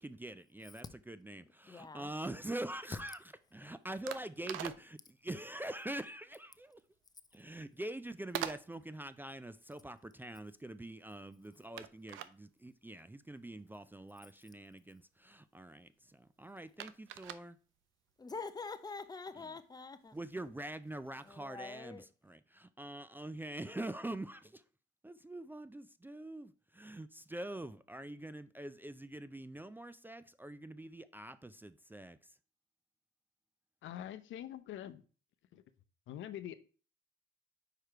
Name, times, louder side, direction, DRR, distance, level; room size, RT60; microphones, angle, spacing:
voice 1, 0.0-3.2 3.5-6.8 7.3-17.6 20.1-24.6 25.0-32.2, right 1 dB, 10° right, 0.3 m, -44 dB
voice 2, 1.7-2.1 18.2-20.2 21.2-22.0, left 4 dB, 20° left, 0.6 m, -45 dB
sound 1, 1.8-21.4, right 12 dB, 90° right, 0.5 m, -49 dB
voice 3, 33.8-35.0 35.5-35.6 36.1-36.5, left 11 dB, 75° left, 0.6 m, -44 dB
4.9 x 4.8 x 4.4 m
cardioid pair, 90°, 20 cm